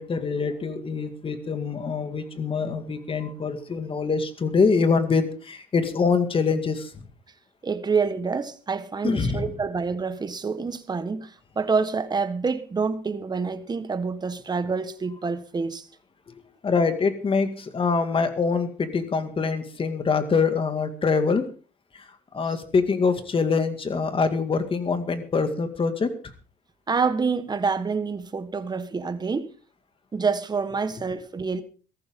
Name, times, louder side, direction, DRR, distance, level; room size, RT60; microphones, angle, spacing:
voice 1, 0.0-7.0 9.0-9.5 16.6-21.5 21.9-22.1 22.3-26.1, left 4 dB, 30° left, 2.1 m, -24 dB
voice 2, 7.6-15.9 26.9-29.5 30.1-31.6, right 5 dB, 25° right, 1.4 m, -27 dB
17.5 x 14.0 x 3.7 m
cardioid pair, 110°, 17 cm